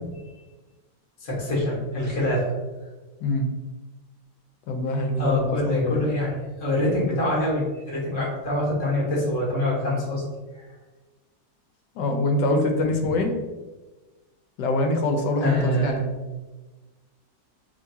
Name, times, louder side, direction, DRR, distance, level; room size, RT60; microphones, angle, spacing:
voice 1, 1.2-2.5 4.9-10.2 10.6-10.7 15.4-16.2, left 1 dB, 45° left, -4 dB, 1.8 m, -25 dB
voice 2, 4.7-6.1 11.9-13.3 14.6-16.0, left 2 dB, 80° left, 4 dB, 1.3 m, -24 dB
6.7 x 2.6 x 2.8 m, 1.2 s
omnidirectional pair, 1.9 m